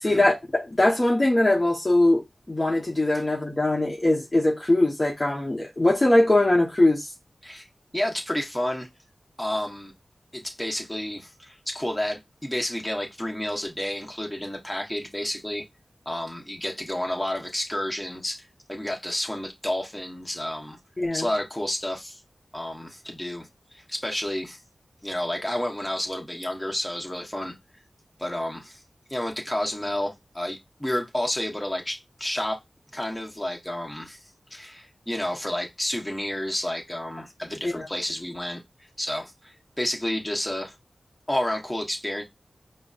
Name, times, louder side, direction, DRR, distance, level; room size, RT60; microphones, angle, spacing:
voice 1, 0.0-7.1 21.0-21.3 37.6-37.9, left 1 dB, 35° left, 1.0 m, -21 dB
voice 2, 7.9-8.9 9.4-9.9 10.3-15.6 16.0-18.4 18.7-20.8 21.1-22.2 22.5-23.5 23.7-24.6 25.0-27.5 28.2-28.8 29.1-32.6 32.9-34.2 34.5-38.6 39.0-40.7 41.3-42.2, left 1 dB, 15° left, 1.3 m, -30 dB
5.1 x 2.2 x 2.5 m
cardioid pair, 40°, 0 cm